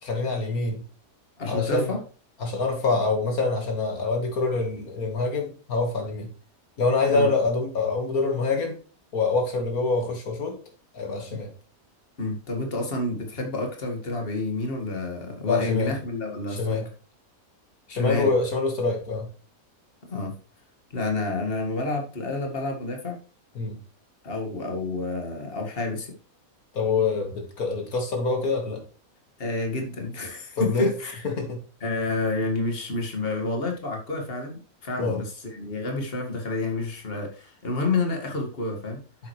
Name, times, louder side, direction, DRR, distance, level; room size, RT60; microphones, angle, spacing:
voice 1, 0.0-0.8 1.5-1.9 2.4-6.3 6.8-8.8 9.1-10.6 10.9-11.5 15.4-15.9 16.6-16.9 17.9-19.3 23.6-23.8 26.7-28.8 30.6-30.9 31.2-31.6 35.0-35.2, left 3 dB, 80° left, 2.3 m, -25 dB
voice 2, 1.4-2.0 7.1-7.3 11.3-11.4 12.2-16.8 17.9-18.3 20.1-20.3 20.9-23.2 24.2-26.1 29.4-31.2 31.8-39.0, left 2 dB, 40° left, 2.2 m, -29 dB
9.2 x 7.7 x 3.2 m
omnidirectional pair, 1.5 m